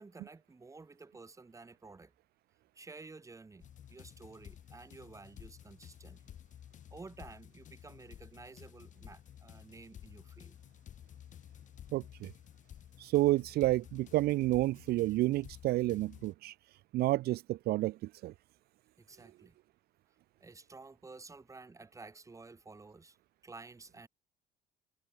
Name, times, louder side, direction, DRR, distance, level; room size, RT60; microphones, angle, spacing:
voice 1, 0.0-2.1 2.8-6.3 6.9-10.6 19.0-19.6 20.4-23.2 23.4-24.1, right 3 dB, 20° right, 2.1 m, -52 dB
sound 1, 3.6-16.3, left 10 dB, 50° left, 0.9 m, -53 dB
voice 2, 11.9-12.3 13.0-16.5 16.9-18.3, right 17 dB, 70° right, 0.4 m, -30 dB
cardioid pair, 110°, 17 cm